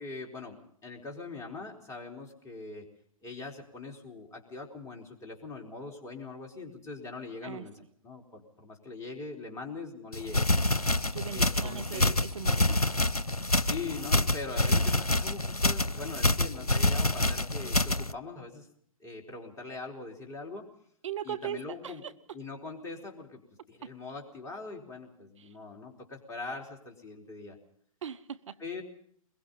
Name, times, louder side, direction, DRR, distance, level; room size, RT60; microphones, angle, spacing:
voice 1, 0.0-2.9 3.2-7.7 8.0-10.5 11.3-12.2 13.5-18.7 19.0-20.7 21.2-22.0 22.3-23.4 23.7-27.6 28.6-28.8, left 3 dB, 15° left, 2 dB, 4.2 m, -42 dB
sound 1, 10.1-18.1, left 1 dB, 90° left, 0.8 m, -27 dB
voice 2, 11.1-12.8 21.0-22.1 23.8-23.9 25.4-25.5 28.0-28.6, right 9 dB, 55° right, 13 dB, 1.1 m, -39 dB
22.5 x 22.0 x 5.5 m, 0.64 s
figure-of-eight pair, 115°, 19 cm